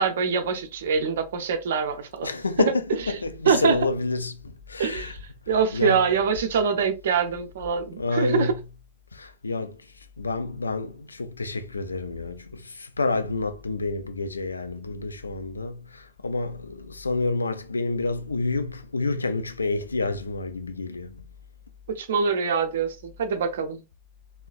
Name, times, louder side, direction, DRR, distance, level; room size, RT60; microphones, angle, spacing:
voice 1, 0.0-2.3 2.6-2.7 3.4-3.8 4.8-5.2 5.5-8.5 21.9-23.8, right 6 dB, 60° right, 0.6 m, -24 dB
voice 2, 2.2-5.1 5.7-6.0 8.0-8.6 9.1-9.8 10.2-21.2, left 3 dB, 80° left, 0.4 m, -29 dB
3.7 x 2.1 x 2.4 m
figure-of-eight pair, 90°, 0 cm